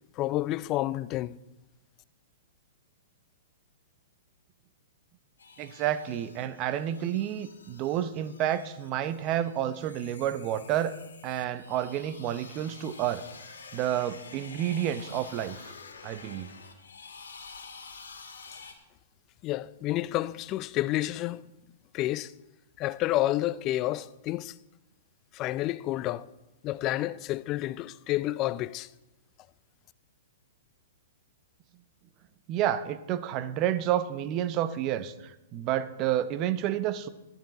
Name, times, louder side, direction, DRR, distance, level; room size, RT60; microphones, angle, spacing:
voice 1, 0.2-1.4 19.4-21.4 21.9-22.3 22.8-24.5 25.3-26.3 26.6-28.9, left 15 dB, 35° left, 0.4 m, -29 dB
sound 1, 5.4-18.7, left 5 dB, 85° left, 2.0 m, -49 dB
voice 2, 5.6-10.9 11.2-13.2 13.7-15.7 16.0-16.5 32.5-37.1, right 11 dB, 35° right, 0.8 m, -30 dB
13.5 x 10.5 x 4.3 m
hypercardioid pair, 125°, 0 cm